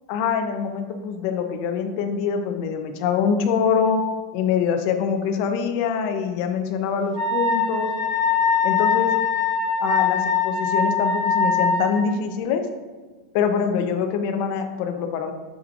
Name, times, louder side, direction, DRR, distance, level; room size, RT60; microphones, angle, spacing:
voice 1, 0.1-4.0 4.3-7.9 8.6-9.1 9.8-12.6 13.3-15.3, left 6 dB, 45° left, 5 dB, 0.7 m, -24 dB
Wind instrument woodwind instrument, 7.1-12.1, left 5 dB, 10° right, 1.8 m, -22 dB
7.8 x 5.2 x 2.5 m, 1.4 s
supercardioid pair, 150°, 4 cm